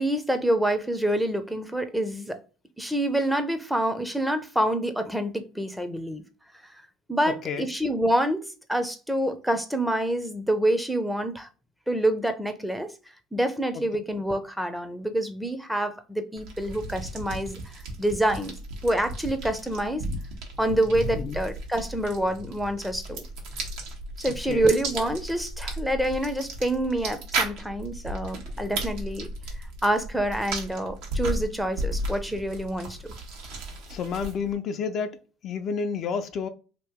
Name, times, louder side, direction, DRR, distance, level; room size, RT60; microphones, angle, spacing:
voice 1, 0.0-2.4 2.8-6.2 7.1-11.5 11.9-12.9 13.3-17.6 18.0-18.5 18.8-20.0 20.6-23.2 24.2-29.3 29.8-33.1, right 1 dB, 5° right, 0.6 m, -27 dB
voice 2, 7.3-7.7 21.1-21.4 24.5-24.7 33.9-35.2 35.4-36.5, left 6 dB, 55° left, 0.5 m, -30 dB
sound 1, 16.4-34.5, right 2 dB, 70° right, 1.1 m, -35 dB
2.9 x 2.6 x 3.5 m
hypercardioid pair, 75°, 0 cm